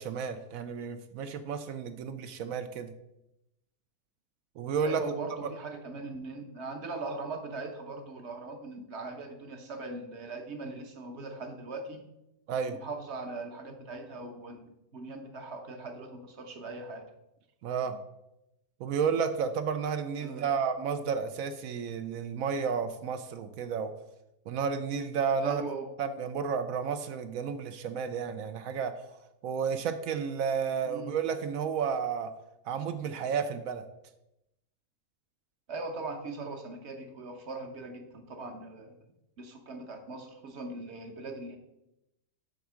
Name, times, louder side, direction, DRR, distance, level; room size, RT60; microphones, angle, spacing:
voice 1, 0.0-2.9 4.6-5.0 5.4-5.5 12.5-12.8 17.6-18.0 18.8-23.9 24.5-25.6 26.0-29.1 29.4-32.3 32.7-33.9, right 6 dB, 70° right, 9 dB, 0.9 m, -32 dB
voice 2, 4.8-12.0 12.7-17.0 20.2-20.5 25.4-25.9 30.8-31.1 35.7-38.9 39.4-41.6, right 3 dB, 50° right, 5 dB, 1.1 m, -40 dB
7.9 x 3.6 x 6.2 m, 0.89 s
omnidirectional pair, 1.6 m